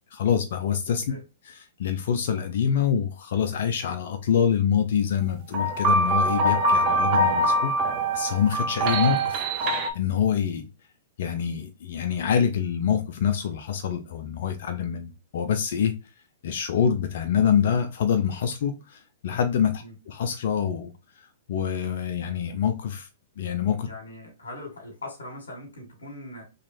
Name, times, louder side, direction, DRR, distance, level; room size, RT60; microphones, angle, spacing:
voice 1, 0.1-1.0 1.4-7.7 8.1-10.7 11.2-15.9 16.4-20.9 21.5-23.1 23.4-23.9, left 8 dB, 60° left, 0.6 m, -26 dB
sound 1, 5.5-9.9, right 1 dB, 40° right, 0.8 m, -23 dB
voice 2, 23.8-26.4, left 1 dB, 85° left, 1.7 m, -40 dB
3.9 x 3.1 x 2.6 m
hypercardioid pair, 125°, 0 cm